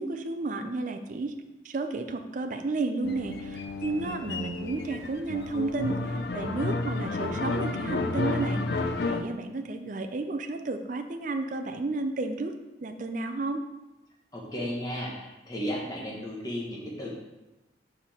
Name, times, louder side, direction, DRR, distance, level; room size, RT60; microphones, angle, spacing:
voice 1, 0.0-1.3 1.6-12.5 12.8-13.6, right 3 dB, 45° right, 7 dB, 0.4 m, -32 dB
sound 1, 3.0-9.2, left 3 dB, 60° left, 0.4 m, -31 dB
voice 2, 14.3-17.1, equal, 20° left, -3 dB, 1.3 m, -34 dB
5.5 x 5.0 x 4.3 m, 1.0 s
head